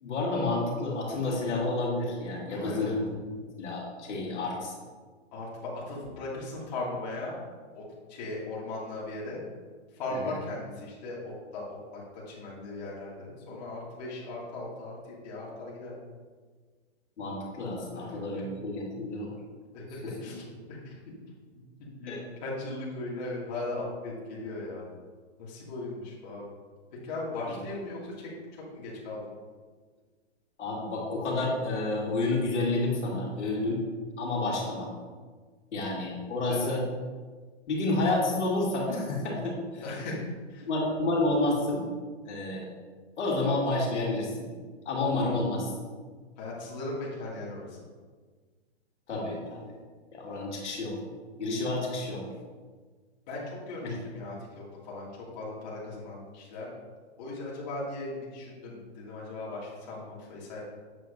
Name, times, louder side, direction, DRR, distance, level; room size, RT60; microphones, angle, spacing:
voice 1, 0.0-3.3 3.6-4.7 10.1-10.4 17.2-19.3 20.0-20.3 22.1-22.2 30.6-33.8 34.2-34.9 35.7-36.8 37.7-39.8 40.7-41.9 42.2-42.7 43.2-44.5 44.9-45.7 49.1-49.7 50.1-51.0 51.4-52.2 53.8-53.9, left 2 dB, 90° left, -3 dB, 2.2 m, -30 dB
voice 2, 2.5-3.0 4.2-4.4 5.3-7.4 7.7-9.4 9.9-15.9 17.9-18.4 19.7-20.9 21.8-22.1 22.4-24.9 25.4-26.5 27.0-29.3 36.5-36.8 39.8-40.2 40.5-40.7 46.4-47.8 53.3-54.4 54.8-55.1 55.4-56.7 57.2-60.6, left 2 dB, 40° left, -6 dB, 2.3 m, -38 dB
7.9 x 7.3 x 2.6 m, 1.5 s
hypercardioid pair, 165°, 34 cm